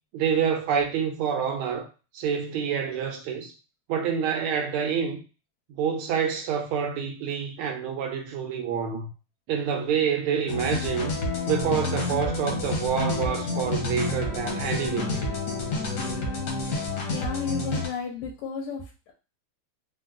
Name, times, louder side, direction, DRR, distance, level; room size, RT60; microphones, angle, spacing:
voice 1, 0.1-1.9 2.1-3.5 3.9-5.2 5.7-9.1 9.5-11.1 11.5-15.4, right 7 dB, 85° right, 1.5 m, -27 dB
sound 1, 10.5-17.9, left 2 dB, 65° left, 0.8 m, -29 dB
voice 2, 17.1-19.1, left 5 dB, 85° left, 1.5 m, -33 dB
4.0 x 2.0 x 2.4 m
omnidirectional pair, 2.4 m